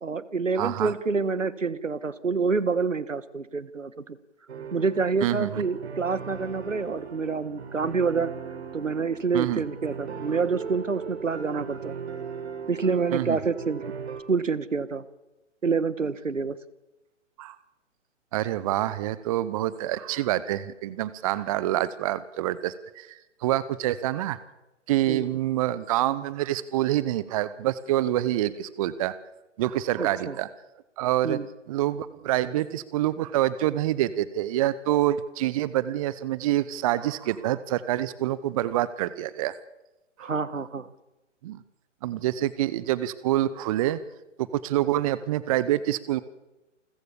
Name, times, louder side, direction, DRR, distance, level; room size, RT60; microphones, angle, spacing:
voice 1, 0.0-4.2 4.7-8.3 8.7-11.9 12.7-13.8 14.3-15.0 15.6-16.6 25.1-25.3 30.0-30.4 31.2-31.5 40.2-40.9, right 4 dB, 80° right, 17 dB, 1.6 m, -27 dB
voice 2, 0.6-0.9 5.2-5.6 9.3-9.6 13.1-13.4 17.4-17.6 18.3-24.4 24.9-29.1 29.6-30.5 31.0-31.4 31.7-39.5 40.2-40.3 41.4-41.6 42.0-44.0 44.6-46.2, right 14 dB, 30° right, 17 dB, 0.8 m, -26 dB
sound 1, 4.5-14.2, right 6 dB, 60° right, 3.7 m, -38 dB
29.0 x 14.5 x 7.0 m, 1.0 s
figure-of-eight pair, 125°, 37 cm